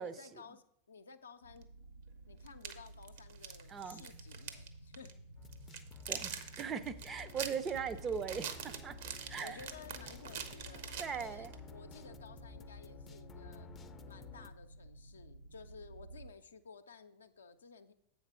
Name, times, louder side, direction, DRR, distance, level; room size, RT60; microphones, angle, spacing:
voice 1, 0.0-1.7 2.3-5.1 9.4-13.7 14.1-17.9, left 5 dB, 70° left, 8 dB, 0.6 m, -55 dB
sound 1, 1.4-16.3, right 2 dB, 85° right, 0.9 m, -54 dB
sound 2, 1.6-1.7 2.5-4.7 4.9-5.1 5.5-11.6, right 8 dB, 55° right, 0.8 m, -44 dB
voice 2, 3.7-4.0 6.1-9.0 9.3-9.6 11.0-11.5, right 6 dB, 25° right, 12 dB, 0.5 m, -39 dB
sound 3, 5.4-14.5, left 6 dB, 20° left, 0.5 m, -54 dB
7.8 x 5.1 x 6.1 m, 0.72 s
figure-of-eight pair, 90°, 0 cm